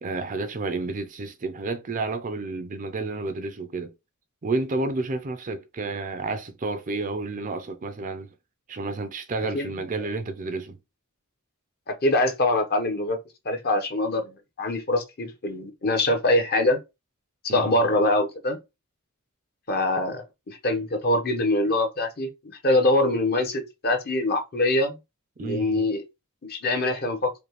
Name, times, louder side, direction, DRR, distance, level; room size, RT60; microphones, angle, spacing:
voice 1, 0.0-3.9 4.4-8.3 8.7-10.8 17.5-17.7 25.4-25.9, right 3 dB, 40° right, 0.5 m, -30 dB
voice 2, 11.9-13.2 13.4-16.8 17.4-18.6 19.7-25.0 25.4-26.0 26.4-27.3, left 1 dB, 45° left, 1.0 m, -24 dB
5.1 x 2.3 x 3.1 m
head